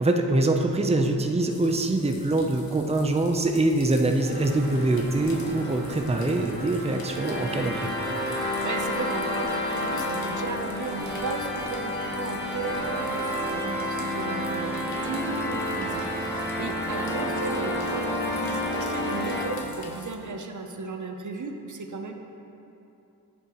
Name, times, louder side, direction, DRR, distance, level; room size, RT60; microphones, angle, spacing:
voice 1, 0.0-8.0, right 2 dB, 15° right, 3 dB, 0.6 m, -24 dB
sound 1, 1.5-20.2, left 4 dB, 75° left, 0.9 m, -48 dB
sound 2, 4.2-19.5, left 1 dB, 30° left, 1.8 m, -30 dB
voice 2, 8.4-22.1, right 3 dB, 55° right, 4 dB, 0.7 m, -35 dB
11.0 x 8.5 x 3.0 m, 2.8 s
wide cardioid pair, 60°, 36 cm